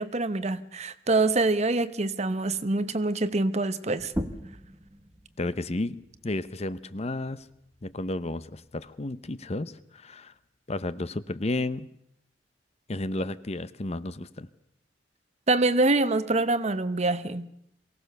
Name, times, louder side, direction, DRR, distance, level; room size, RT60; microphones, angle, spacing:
voice 1, 0.0-4.1 15.5-17.5, right 2 dB, 40° right, 13 dB, 0.9 m, -25 dB
sound 1, 4.0-9.2, equal, 15° right, 1.4 m, -41 dB
voice 2, 5.4-7.4 7.8-10.3 10.7-11.9 12.9-14.5, left 2 dB, 35° left, 14 dB, 0.8 m, -32 dB
23.0 x 17.5 x 6.7 m, 0.74 s
head